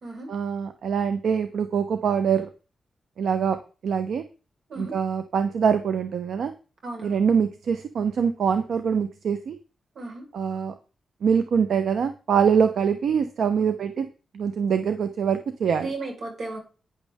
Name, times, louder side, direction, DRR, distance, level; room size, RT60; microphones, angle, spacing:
voice 1, 0.3-2.5 3.2-3.6 3.8-4.2 4.8-6.5 7.0-9.6 10.3-10.7 11.2-14.1 14.3-15.9, right 7 dB, 75° right, 9 dB, 0.9 m, -24 dB
voice 2, 6.8-7.2 9.9-10.2 15.8-16.6, right 2 dB, 60° right, 2 dB, 4.8 m, -35 dB
11.5 x 9.7 x 3.6 m, 0.34 s
wide cardioid pair, 120°, 0 cm